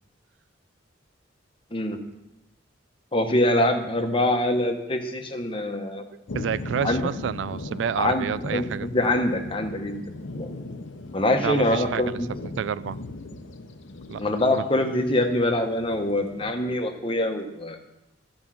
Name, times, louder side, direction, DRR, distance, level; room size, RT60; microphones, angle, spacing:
voice 1, 3.1-6.0 6.8-7.1 8.0-10.0 10.3-10.5 11.1-12.3 14.2-17.8, left 1 dB, 30° left, 5 dB, 1.0 m, -24 dB
sound 1, 6.3-16.5, left 2 dB, 75° left, 0.8 m, -38 dB
voice 2, 6.3-9.0 11.4-12.2 12.6-13.0 14.1-14.7, right 8 dB, 70° right, 17 dB, 0.3 m, -29 dB
12.5 x 5.3 x 7.4 m, 0.91 s
head